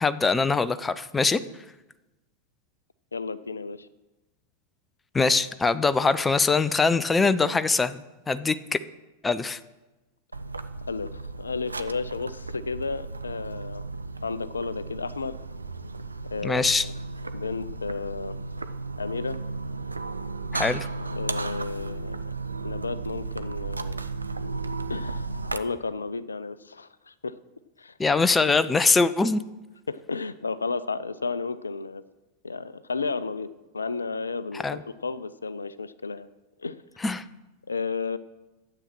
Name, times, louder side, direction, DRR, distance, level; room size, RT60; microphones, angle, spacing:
voice 1, 0.0-1.4 5.1-8.0 8.3-8.6 9.2-9.6 16.4-16.9 20.5-20.9 28.0-29.4 34.6-34.8 37.0-37.2, left 4 dB, 15° left, 14 dB, 0.5 m, -22 dB
voice 2, 3.1-3.9 10.9-13.8 14.2-15.4 16.3-16.9 17.3-18.3 19.0-19.4 21.2-22.4 22.6-24.0 24.9-25.3 25.5-27.3 27.8-27.9 29.0-29.1 29.9-32.0 32.4-33.5 33.7-36.3 36.6-36.8 37.7-38.2, left 4 dB, 75° left, 16 dB, 0.5 m, -32 dB
sound 1, 10.3-25.6, right 3 dB, 80° right, 0.6 m, -34 dB
12.5 x 8.3 x 6.1 m, 1.1 s
figure-of-eight pair, 90°, 0 cm